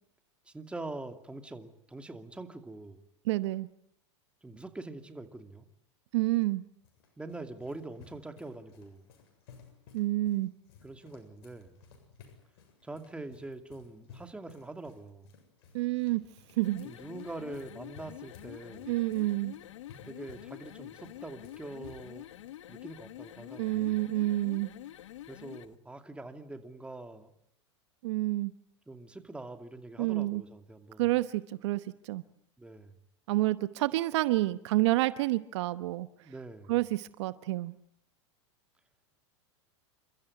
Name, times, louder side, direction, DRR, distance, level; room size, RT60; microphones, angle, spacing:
voice 1, 0.4-3.0 4.4-5.6 7.2-9.1 10.8-11.7 12.8-15.3 16.8-18.9 20.0-22.3 22.7-24.0 25.3-27.3 28.9-31.0 32.6-32.9 36.2-36.7, right 2 dB, 5° right, 2.6 m, -44 dB
voice 2, 3.3-3.7 6.1-6.6 9.9-10.5 15.7-16.2 16.6-16.9 18.9-19.5 23.6-24.7 28.0-28.5 30.0-30.4 31.0-32.2 33.3-36.1 36.7-37.7, right 18 dB, 70° right, 1.0 m, -29 dB
sound 1, 6.4-22.5, left 6 dB, 65° left, 7.7 m, -57 dB
sound 2, 16.5-25.8, left 13 dB, 80° left, 1.0 m, -47 dB
29.5 x 14.0 x 9.8 m
hypercardioid pair, 120°, 15 cm